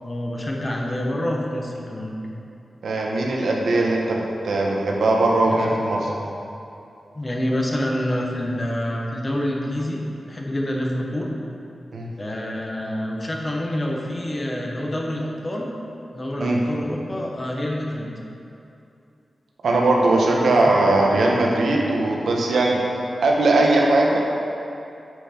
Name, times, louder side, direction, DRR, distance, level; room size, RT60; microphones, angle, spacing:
voice 1, 0.0-2.2 5.5-5.8 7.1-10.0 10.3-11.3 12.2-15.7 16.1-18.1 20.2-20.5, left 1 dB, 25° left, -1 dB, 1.0 m, -27 dB
voice 2, 2.8-6.1 11.9-12.1 16.4-16.6 19.6-22.8 23.2-24.2, right 2 dB, 90° right, -1 dB, 1.1 m, -19 dB
9.0 x 5.9 x 4.4 m, 2.7 s
wide cardioid pair, 130°, 0 cm